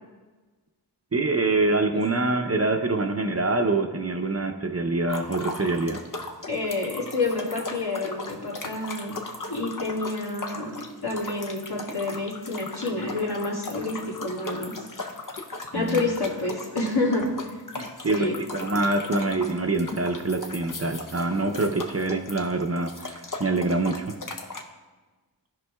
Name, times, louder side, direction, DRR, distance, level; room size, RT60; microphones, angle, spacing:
voice 1, 1.1-6.0 15.7-16.1 17.8-24.2, right 2 dB, 35° right, 5 dB, 0.6 m, -25 dB
sound 1, 5.1-24.6, left 3 dB, 50° left, 0.8 m, -38 dB
voice 2, 6.5-9.2 9.5-10.7 11.0-14.9 15.7-17.3 18.0-18.4, left 2 dB, 70° left, -5 dB, 2.1 m, -28 dB
15.0 x 5.2 x 2.3 m, 1.3 s
wide cardioid pair, 55°, 40 cm